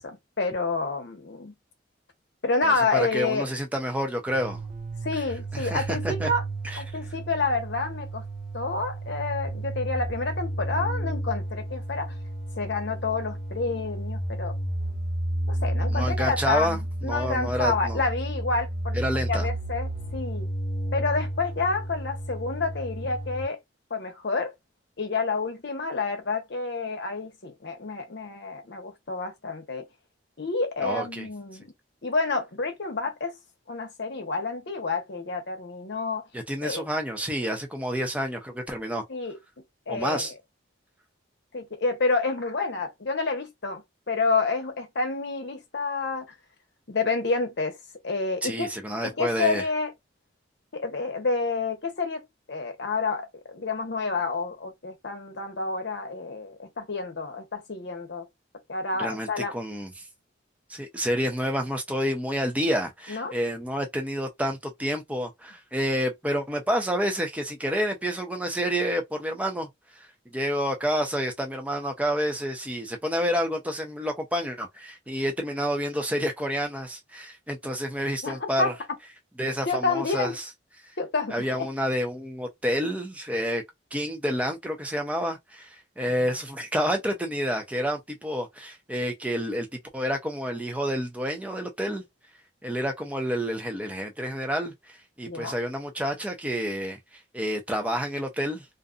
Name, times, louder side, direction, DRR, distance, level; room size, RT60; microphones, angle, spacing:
voice 1, 0.0-1.5 2.4-3.5 5.0-6.4 6.8-8.2 8.5-12.2 12.6-14.6 15.5-19.0 19.3-20.5 20.9-23.6 23.9-24.5 25.0-29.9 30.4-31.7 32.0-33.4 33.7-36.2 36.6-36.8 39.1-39.4 39.9-40.4 41.5-46.3 46.9-47.8 48.0-48.7 49.0-49.9 50.7-58.3 58.7-59.5 63.1-63.3 78.2-78.7 79.7-80.4 81.0-81.7 86.2-86.3 95.2-95.5, left 3 dB, 60° left, 0.8 m, -29 dB
voice 2, 2.6-4.6 5.5-6.3 6.6-6.8 15.9-18.0 18.9-19.5 30.8-31.3 36.3-39.0 39.9-40.3 48.4-49.6 59.0-59.9 60.7-69.7 70.0-78.7 79.4-80.4 81.3-83.6 83.9-89.7 89.9-92.0 92.6-98.6, equal, 10° right, 0.6 m, -29 dB
sound 1, 4.3-23.4, right 1 dB, 40° right, 1.5 m, -32 dB
2.6 x 2.3 x 2.4 m
head